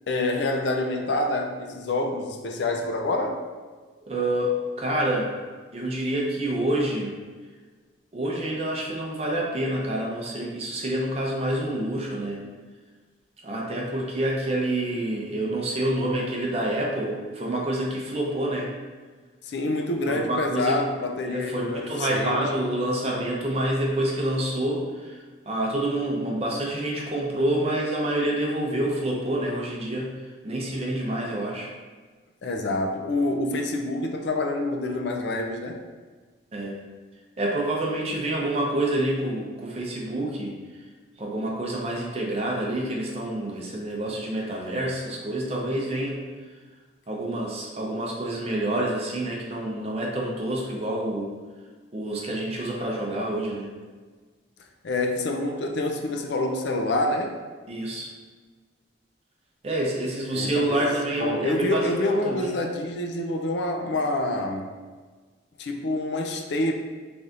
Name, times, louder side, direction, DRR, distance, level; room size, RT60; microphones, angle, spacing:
voice 1, 0.1-3.4 19.4-22.4 32.4-35.8 54.8-57.4 60.3-64.7 65.6-66.7, left 2 dB, 60° left, 3 dB, 0.4 m, -27 dB
voice 2, 4.0-5.3 5.7-7.2 8.1-12.4 13.4-18.7 20.1-20.8 21.3-31.7 36.5-36.8 37.4-40.6 41.2-46.2 47.1-51.3 51.9-53.7 57.7-58.1 59.6-62.5, right 1 dB, 30° right, -2 dB, 0.6 m, -27 dB
4.0 x 3.4 x 2.5 m, 1.4 s
head